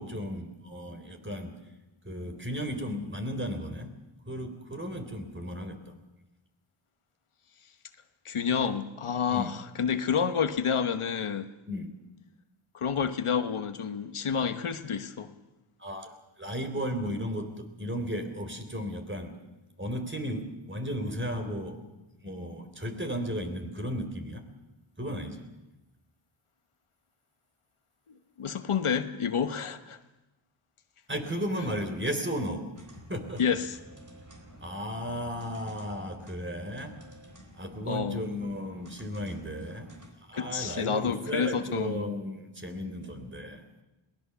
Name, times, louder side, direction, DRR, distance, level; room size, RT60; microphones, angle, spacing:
voice 1, 0.0-1.6 2.0-3.9 4.2-6.0 9.3-9.5 11.7-11.9 15.8-19.4 19.8-21.9 22.2-24.4 25.0-25.4 31.1-32.8 33.1-33.4 34.6-37.1 37.5-39.9 40.3-43.8, equal, 25° right, 3.5 m, -35 dB
voice 2, 8.2-11.5 12.7-15.3 28.4-30.0 33.4-33.8 37.9-38.2 40.3-42.1, left 7 dB, 85° left, 1.2 m, -29 dB
sound 1, 32.7-40.1, right 1 dB, 40° right, 4.4 m, -51 dB
22.0 x 18.5 x 7.0 m
wide cardioid pair, 55°, 49 cm